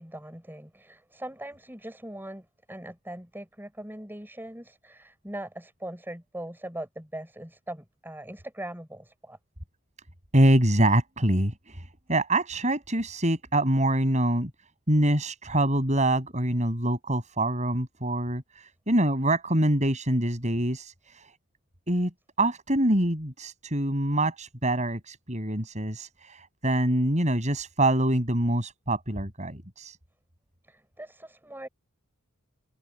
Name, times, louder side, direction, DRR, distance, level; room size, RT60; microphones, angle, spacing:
voice 1, 0.0-9.4 30.7-31.7, right 1 dB, 10° right, 6.6 m, -41 dB
voice 2, 10.3-14.5 14.9-21.3 21.9-22.1 22.4-30.0, right 1 dB, 35° right, 8.0 m, -25 dB
head